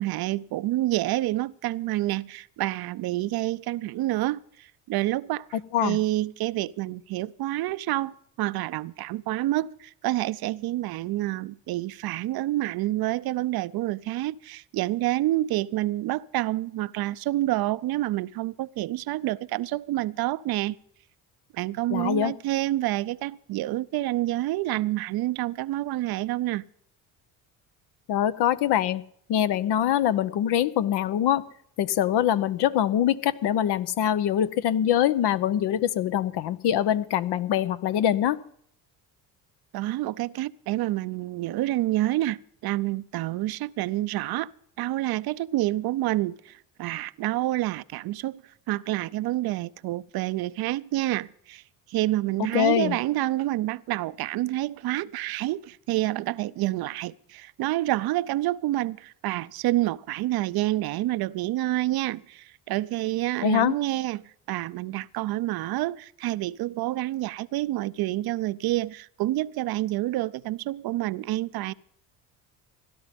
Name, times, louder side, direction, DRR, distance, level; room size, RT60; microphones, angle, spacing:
voice 1, 0.0-20.7 21.5-26.6 39.7-44.5 44.8-48.4 48.7-51.6 51.9-71.7, right 16 dB, 55° right, 0.6 m, -28 dB
voice 2, 21.9-22.3 28.1-29.0 29.3-31.4 31.8-38.4 52.5-53.0 63.4-63.7, left 10 dB, 65° left, 0.9 m, -23 dB
16.5 x 12.0 x 5.3 m
hypercardioid pair, 65°, 44 cm